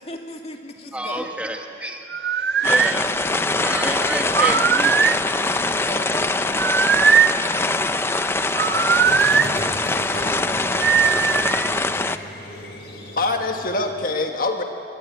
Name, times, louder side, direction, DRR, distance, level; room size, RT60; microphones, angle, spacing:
voice 1, 0.0-1.3 5.7-6.9 9.8-12.0, left 1 dB, 35° left, 3 dB, 2.2 m, -38 dB
voice 2, 0.9-2.0 2.6-3.1 3.6-5.1, right 1 dB, 5° right, 3 dB, 1.3 m, -29 dB
sound 1, 2.1-3.0 4.3-5.2 6.5-7.4 8.6-9.5 10.8-11.7, right 7 dB, 65° right, 0.6 m, -19 dB
Rain on tent, 2.6-12.2, left 2 dB, 15° left, 0.6 m, -23 dB
Squeak, 8.7-14.0, left 1 dB, 65° left, 4.7 m, -36 dB
voice 3, 13.2-14.6, left 2 dB, 50° left, 4 dB, 1.5 m, -24 dB
26.0 x 23.0 x 9.6 m, 2.8 s
head